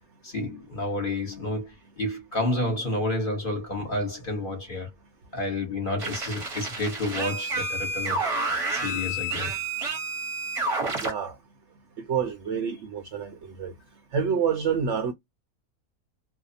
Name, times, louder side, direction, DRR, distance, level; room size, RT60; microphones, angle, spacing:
voice 1, 0.2-4.9 5.3-8.3 8.7-9.6, left 1 dB, 40° left, 1.1 m, -30 dB
sound 1, 6.0-11.1, right 2 dB, 30° right, 0.7 m, -29 dB
voice 2, 11.0-11.4 12.0-13.7 14.1-15.1, right 7 dB, 65° right, 0.8 m, -28 dB
2.6 x 2.0 x 2.6 m
omnidirectional pair, 1.6 m